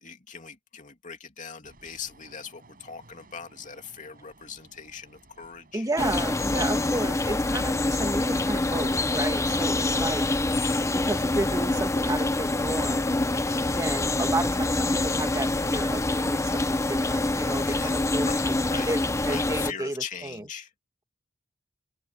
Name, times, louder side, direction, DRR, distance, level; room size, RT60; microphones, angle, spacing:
voice 1, 0.0-5.9 17.6-18.9 19.2-20.7, left 6 dB, 40° left, 2.9 m, -40 dB
sound 1, 1.6-19.2, right 2 dB, 45° right, 6.7 m, -60 dB
voice 2, 5.7-10.2 10.9-13.1 13.7-18.3 18.9-19.9 20.2-20.4, right 2 dB, 15° right, 1.8 m, -32 dB
sound 2, 6.0-19.7, left 2 dB, 15° left, 0.6 m, -26 dB
open air
head